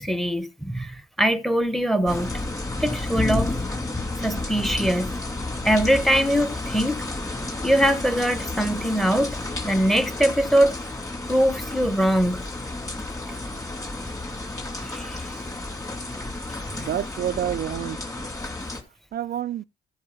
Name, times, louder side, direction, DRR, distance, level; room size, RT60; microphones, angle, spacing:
voice 1, 0.0-2.3 2.8-3.5 4.2-5.2 5.6-7.0 7.6-9.4 9.6-10.8 11.3-12.5 13.3-13.4 14.8-15.3 16.7-16.9, equal, ahead, 1.1 m, -22 dB
sound 1, 2.1-18.8, left 2 dB, 15° left, 2.9 m, -31 dB
voice 2, 16.7-18.0 19.1-19.6, right 11 dB, 50° right, 0.4 m, -28 dB
14.0 x 4.7 x 5.6 m
cardioid pair, 90°, 20 cm